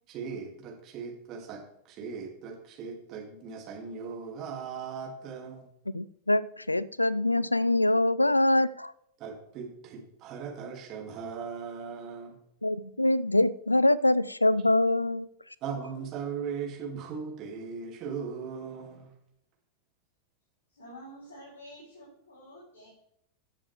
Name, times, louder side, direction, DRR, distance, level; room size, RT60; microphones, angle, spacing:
voice 1, 0.1-5.7 9.2-12.4 15.6-19.1, right 6 dB, 35° right, 0 dB, 2.8 m, -38 dB
voice 2, 5.9-8.9 12.6-15.3, left 1 dB, 85° left, 21 dB, 0.3 m, -24 dB
voice 3, 20.7-22.9, equal, 65° left, -8 dB, 4.7 m, -49 dB
14.5 x 7.1 x 3.6 m, 0.74 s
figure-of-eight pair, 90°, 0 cm